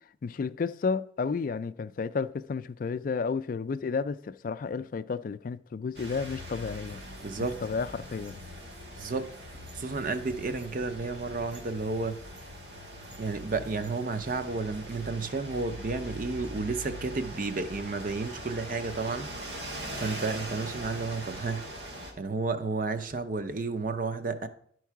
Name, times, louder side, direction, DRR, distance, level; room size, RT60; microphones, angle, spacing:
voice 1, 0.2-7.0 7.6-8.4, left 5 dB, 50° left, 0.3 m, -32 dB
sound 1, 5.9-22.1, equal, 70° right, 2.0 m, -42 dB
voice 2, 7.2-7.6 9.0-9.3 9.7-12.2 13.2-19.6 19.9-21.6 22.2-24.5, right 3 dB, 50° right, 0.7 m, -32 dB
11.0 x 4.6 x 4.6 m
head